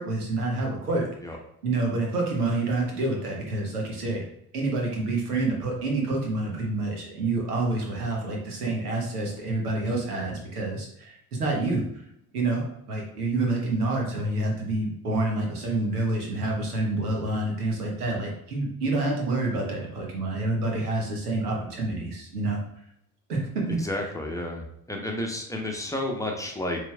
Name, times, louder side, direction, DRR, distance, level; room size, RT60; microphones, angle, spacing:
voice 1, 0.0-1.4 1.6-4.2 4.5-11.8 12.3-22.6 23.3-24.1, right 2 dB, 80° right, -1 dB, 1.0 m, -28 dB
voice 2, 23.8-26.8, left 1 dB, 5° left, 0 dB, 0.9 m, -31 dB
6.9 x 3.3 x 2.3 m, 0.75 s
figure-of-eight pair, 50°, 45 cm